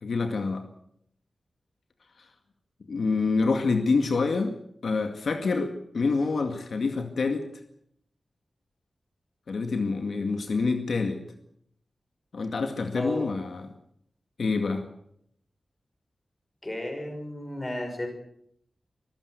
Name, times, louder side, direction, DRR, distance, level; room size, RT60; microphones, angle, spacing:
voice 1, 0.0-0.6 2.9-4.5 4.8-7.4 9.5-11.2 12.3-13.7 14.4-14.9, left 4 dB, 80° left, 6 dB, 2.1 m, -27 dB
voice 2, 12.9-13.3 16.6-18.1, left 1 dB, 20° left, 4 dB, 6.3 m, -33 dB
24.5 x 14.5 x 8.1 m, 0.71 s
wide cardioid pair, 120°, 0 cm